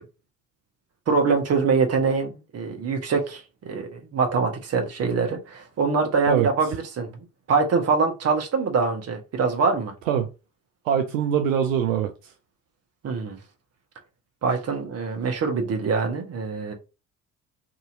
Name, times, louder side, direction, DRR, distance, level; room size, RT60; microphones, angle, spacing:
voice 1, 1.1-7.1 7.5-9.9 13.0-13.4 14.4-16.7, right 4 dB, 35° right, 1.1 m, -24 dB
voice 2, 10.8-12.3, right 9 dB, 70° right, 0.5 m, -23 dB
2.8 x 2.7 x 2.5 m
figure-of-eight pair, 50°, 40 cm